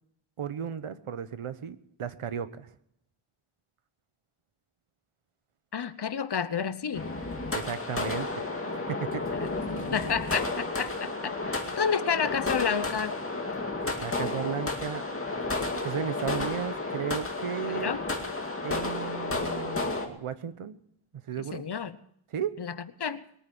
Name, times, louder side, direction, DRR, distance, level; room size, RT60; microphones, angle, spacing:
voice 1, 0.4-2.7 7.5-8.4 8.9-9.2 14.0-15.1 15.8-18.0 18.6-20.8 21.3-21.6 22.3-22.5, right 8 dB, 85° right, 13 dB, 1.1 m, -34 dB
voice 2, 5.7-7.1 9.9-13.2 17.7-18.0 21.4-22.0 22.6-23.2, left 7 dB, 50° left, 14 dB, 0.9 m, -30 dB
sound 1, 6.9-20.1, left 3 dB, 25° left, 2.2 m, -32 dB
22.0 x 9.2 x 6.1 m, 0.72 s
wide cardioid pair, 125°, 50 cm